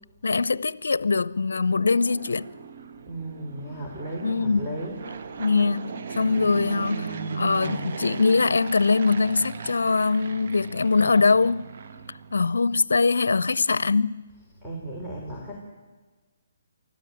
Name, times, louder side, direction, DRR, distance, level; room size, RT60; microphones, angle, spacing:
voice 1, 0.2-2.5 4.2-4.7 5.4-11.7 12.3-14.2, left 4 dB, 85° left, 0.6 m, -22 dB
Fixed-wing aircraft airplane, 1.5-12.6, right 5 dB, 60° right, 1.5 m, -37 dB
voice 2, 3.1-5.0 14.6-15.6, right 1 dB, 5° right, 3.9 m, -35 dB
24.0 x 14.5 x 9.3 m
hypercardioid pair, 150°, 0 cm